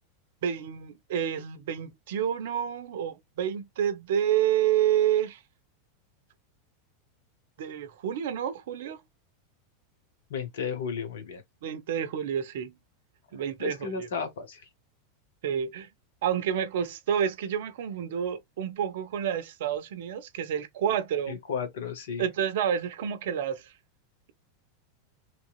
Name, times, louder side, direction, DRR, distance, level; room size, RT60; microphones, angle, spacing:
voice 1, 0.4-5.4 7.6-9.0 11.6-12.7 13.3-14.1 15.4-15.9 16.2-21.4 22.2-23.7, right 9 dB, 60° right, 0.5 m, -29 dB
voice 2, 10.3-11.4 13.6-14.7 21.3-22.2, left 6 dB, 65° left, 0.9 m, -34 dB
3.0 x 2.8 x 2.3 m
figure-of-eight pair, 85°, 0 cm